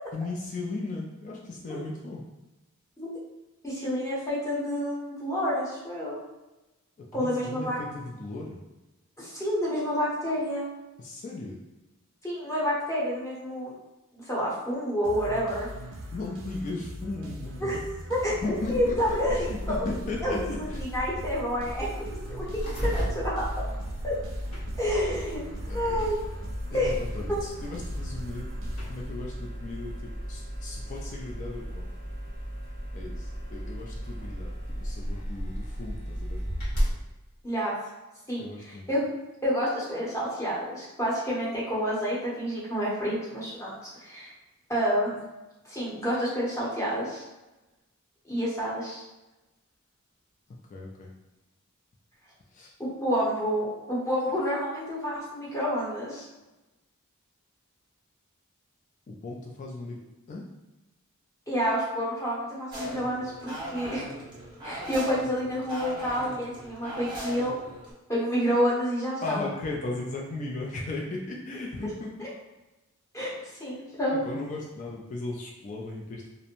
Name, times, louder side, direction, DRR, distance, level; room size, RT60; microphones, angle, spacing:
voice 1, 0.1-2.2 7.0-8.6 11.0-11.6 16.1-17.8 18.4-20.4 20.7-20.8 25.7-26.1 26.7-28.5 28.9-31.9 32.9-34.5 34.8-36.4 38.4-38.8 50.7-51.1 52.5-52.7 59.1-60.0 60.3-60.4 69.2-72.1 73.4-73.5 74.2-76.3, left 2 dB, 35° left, -2 dB, 0.3 m, -36 dB
voice 2, 3.6-6.2 7.1-7.8 9.2-10.6 12.2-13.7 14.1-15.7 17.6-17.8 18.1-19.9 20.2-23.5 24.0-24.2 24.8-25.4 25.7-26.2 26.7-26.9 27.3-27.4 37.4-37.7 38.3-39.0 39.4-44.3 44.7-45.2 45.7-47.2 48.2-49.0 52.8-56.2 61.5-64.0 64.6-67.6 68.1-69.4 73.1-73.3 73.6-74.2, equal, 15° left, -7 dB, 0.8 m, -29 dB
sound 1, 15.0-29.6, equal, 65° right, 0.4 m, -41 dB
sound 2, 18.3-37.0, equal, 80° left, 1.2 m, -35 dB
sound 3, 62.7-67.9, equal, 20° right, 0.7 m, -39 dB
2.5 x 2.0 x 2.8 m, 1.0 s
head